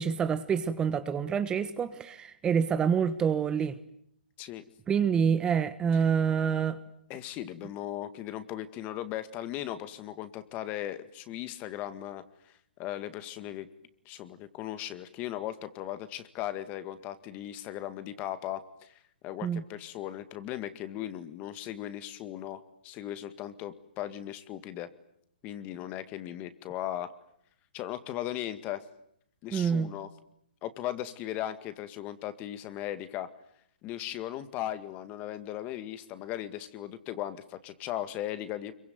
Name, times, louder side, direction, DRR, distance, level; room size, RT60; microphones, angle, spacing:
voice 1, 0.0-3.8 4.9-6.8 19.4-19.6 29.5-29.9, right 7 dB, 15° right, 1.2 m, -27 dB
voice 2, 7.1-12.5 12.8-13.7 14.1-18.9 19.2-24.9 25.4-27.1 27.7-28.8 29.4-30.1 30.6-33.3 33.8-38.7, left 12 dB, 30° left, 2.0 m, -37 dB
26.0 x 23.5 x 9.5 m
hypercardioid pair, 135°, 5 cm